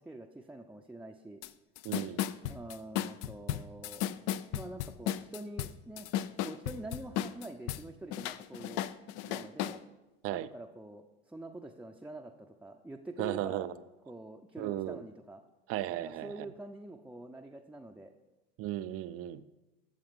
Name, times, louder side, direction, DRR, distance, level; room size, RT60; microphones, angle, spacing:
voice 1, 0.0-1.4 2.5-4.1 4.5-6.1 6.4-8.9 9.3-9.8 10.3-13.7 14.1-15.4 16.0-18.1, right 2 dB, 5° right, 0.6 m, -46 dB
sound 1, 1.4-1.5 1.8-7.8 8.1-9.8, left 12 dB, 60° left, 0.5 m, -35 dB
voice 2, 1.8-2.2 10.2-10.5 13.2-13.7 14.6-15.0 15.7-16.5 18.6-19.4, right 13 dB, 50° right, 0.5 m, -35 dB
12.0 x 7.1 x 3.6 m
hypercardioid pair, 75°, 30 cm